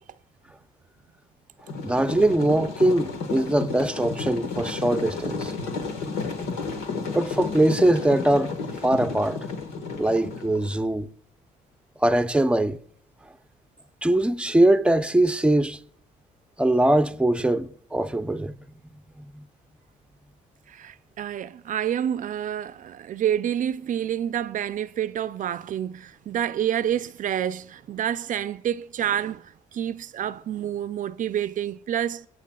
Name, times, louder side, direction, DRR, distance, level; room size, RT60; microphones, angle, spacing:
sound 1, 1.7-10.8, left 4 dB, 85° left, 1.6 m, -32 dB
voice 1, 1.8-5.5 7.1-8.5 8.8-9.4 10.0-11.1 12.0-12.8 14.0-15.8 16.6-18.5 19.2-19.4, right 1 dB, 5° right, 0.7 m, -22 dB
voice 2, 20.7-32.3, right 10 dB, 50° right, 0.5 m, -28 dB
21.5 x 8.1 x 2.4 m
supercardioid pair, 70°, 17 cm